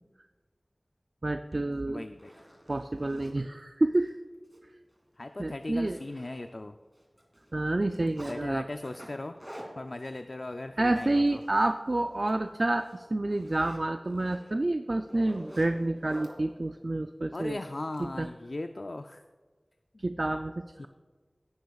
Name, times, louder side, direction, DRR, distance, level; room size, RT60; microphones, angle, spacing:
voice 1, 1.2-2.0 2.7-4.2 5.4-6.0 7.5-8.7 10.8-17.6 18.0-18.3 20.0-20.9, right 2 dB, 55° right, 7 dB, 0.4 m, -29 dB
Zipper (clothing), 1.5-1.6 2.0-3.3 3.9-4.1 4.4-4.6 4.9-5.0 5.4-6.7 7.0-8.4 8.8-11.7 12.1-12.3 12.7-16.3 17.3-18.0, equal, 10° right, 2.6 m, -50 dB
voice 2, 1.9-2.3 5.2-6.8 8.2-9.4 9.8-11.4 17.3-19.2 19.9-20.0 20.8-20.9, left 2 dB, 60° left, 8 dB, 0.4 m, -38 dB
17.5 x 9.4 x 2.4 m, 1.4 s
wide cardioid pair, 45°, 0 cm